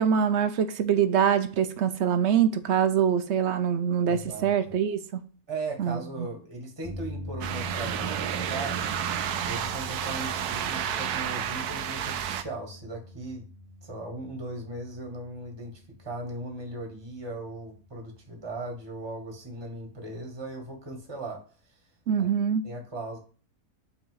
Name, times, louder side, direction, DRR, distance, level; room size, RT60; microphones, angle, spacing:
voice 1, 0.0-5.2 5.8-6.0 22.1-22.6, right 8 dB, 60° right, 0.8 m, -24 dB
voice 2, 4.1-4.5 5.5-8.9 9.4-13.4 13.8-21.4 21.7-21.8 22.2-22.3 22.6-23.2, right 2 dB, 15° right, 1.5 m, -38 dB
sound 1, 6.8-21.1, equal, 80° left, 2.3 m, -44 dB
sound 2, 7.4-12.4, right 9 dB, 85° right, 1.2 m, -31 dB
5.7 x 4.3 x 5.5 m
omnidirectional pair, 1.6 m